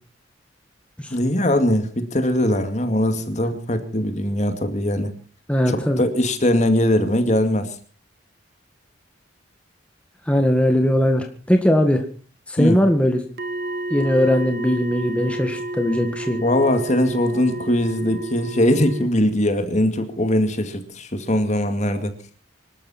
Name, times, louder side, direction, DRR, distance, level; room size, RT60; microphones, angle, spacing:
voice 1, 1.1-5.1 5.7-7.8 12.6-12.8 16.4-22.1, left 1 dB, 35° left, 8 dB, 2.3 m, -21 dB
voice 2, 5.5-6.0 10.2-12.1 12.5-13.2 13.9-16.4, equal, 5° left, 4 dB, 1.7 m, -19 dB
sound 1, 13.4-19.1, right 1 dB, 50° right, 1.4 m, -31 dB
25.5 x 13.0 x 4.3 m, 0.38 s
head